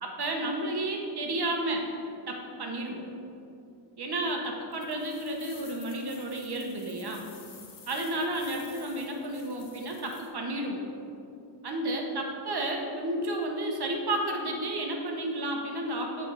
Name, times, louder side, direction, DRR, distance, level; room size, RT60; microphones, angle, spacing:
voice 1, 0.0-1.9 2.3-3.0 4.0-7.2 7.9-10.8 11.6-16.3, right 1 dB, 60° right, 1 dB, 1.0 m, -32 dB
sound 1, 4.7-10.3, left 5 dB, 50° left, 0.8 m, -51 dB
7.5 x 3.5 x 5.4 m, 2.6 s
wide cardioid pair, 115°, 43 cm